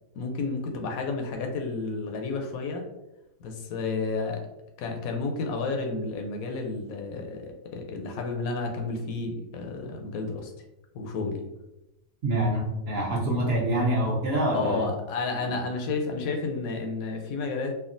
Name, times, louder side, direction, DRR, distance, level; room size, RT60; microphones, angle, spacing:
voice 1, 0.1-2.8 3.4-4.4 4.8-10.5 10.9-11.5 12.7-12.8 14.5-17.7, left 3 dB, 85° left, 3 dB, 1.0 m, -31 dB
voice 2, 12.2-14.9 15.5-15.6, right 1 dB, 55° right, -4 dB, 0.8 m, -26 dB
3.5 x 2.1 x 2.5 m, 0.93 s
omnidirectional pair, 1.4 m